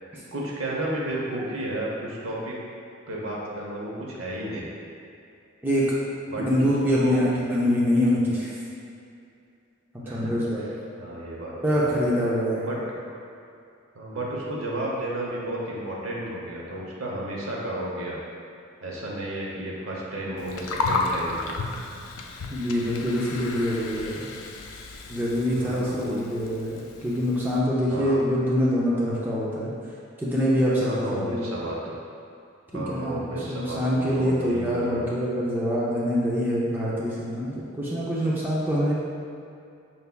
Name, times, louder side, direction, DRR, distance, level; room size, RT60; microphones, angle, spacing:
voice 1, 0.3-2.6 3.1-4.7 6.3-6.6 7.0-7.3 10.0-10.7 11.0-12.1 12.6-12.8 13.0-13.2 13.9-18.2 18.8-21.5 25.5-26.2 27.9-28.2 30.8-31.9 32.7-35.0, right 1 dB, 75° right, -4 dB, 0.8 m, -32 dB
voice 2, 5.6-6.0 6.5-8.5 9.9-10.6 11.6-12.7 22.5-24.3 25.1-29.7 30.2-31.5 32.7-39.0, equal, 10° right, -7 dB, 0.5 m, -25 dB
Gurgling, 20.4-27.6, left 3 dB, 85° left, 0.4 m, -33 dB
5.6 x 3.4 x 2.2 m, 2.5 s
head